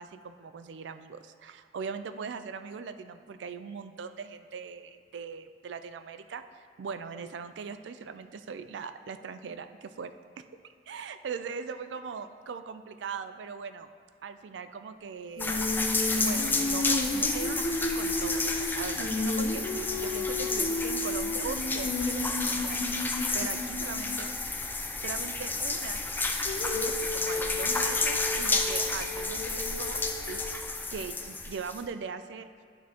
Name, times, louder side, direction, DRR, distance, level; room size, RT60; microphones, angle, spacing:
voice 1, 0.0-6.4 6.8-10.4 10.9-13.9 14.2-15.6 16.2-24.3 24.7-26.1 26.7-30.4 30.9-32.5, right 5 dB, 80° right, 10 dB, 0.4 m, -40 dB
Female singing, 15.4-24.2 26.4-30.7, left 2 dB, 55° left, 0.8 m, -33 dB
sound 1, 15.4-31.9, left 3 dB, 10° left, 0.4 m, -31 dB
10.5 x 5.9 x 2.9 m, 2.2 s
head